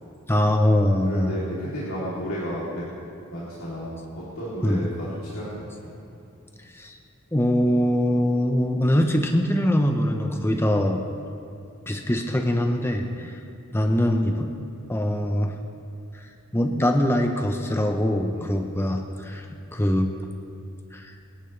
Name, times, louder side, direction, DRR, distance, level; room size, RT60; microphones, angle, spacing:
voice 1, 0.3-1.4 4.6-4.8 6.7-7.0 7.3-11.0 11.9-13.4 13.7-14.5 14.9-15.5 16.1-16.3 16.5-19.5 19.7-20.1 20.9-21.1, left 1 dB, 10° left, 4 dB, 0.7 m, -23 dB
voice 2, 1.0-2.8 3.3-5.9 13.2-13.3 18.3-18.5, equal, 70° left, -9 dB, 3.2 m, -33 dB
24.5 x 11.0 x 3.3 m, 2.6 s
head